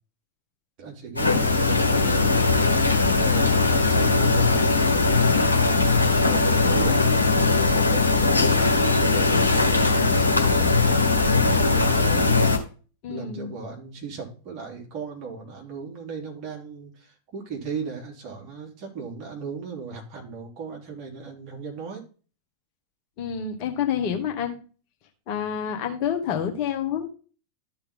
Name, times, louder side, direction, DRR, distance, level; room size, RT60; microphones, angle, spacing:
voice 1, 0.8-2.4 2.9-5.4 5.9-12.5 13.1-22.1, right 5 dB, 40° right, -1 dB, 3.5 m, -37 dB
sound 1, 1.2-12.6, left 3 dB, 85° left, 1.3 m, -20 dB
voice 2, 13.0-13.5 23.2-24.5 25.3-27.1, left 8 dB, 45° left, 4 dB, 1.8 m, -28 dB
13.5 x 4.5 x 3.7 m, 0.37 s
figure-of-eight pair, 90°, 0 cm